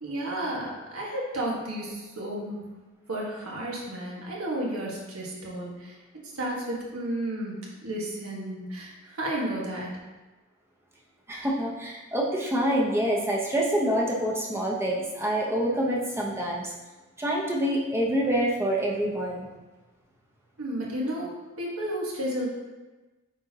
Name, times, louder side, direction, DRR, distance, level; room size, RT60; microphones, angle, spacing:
voice 1, 0.0-2.6 3.1-9.9 20.6-22.5, right 1 dB, 85° right, -4 dB, 1.5 m, -32 dB
voice 2, 11.3-16.7 17.2-19.5, right 1 dB, 10° right, -3 dB, 0.8 m, -26 dB
8.9 x 4.3 x 2.9 m, 1.2 s
head